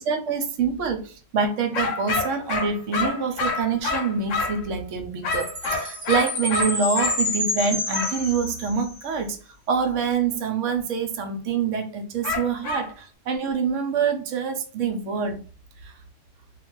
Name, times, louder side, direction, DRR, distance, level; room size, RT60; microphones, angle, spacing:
voice 1, 0.0-9.4 9.7-15.4 15.8-15.9, right 5 dB, 85° right, 0.9 m, -26 dB
sound 1, 1.7-4.6 5.2-7.2 7.9-8.2 12.2-12.9, left 3 dB, 80° left, 0.9 m, -27 dB
Chime, 5.3-9.0, left 2 dB, 5° right, 0.8 m, -29 dB
2.3 x 2.2 x 3.0 m
omnidirectional pair, 1.3 m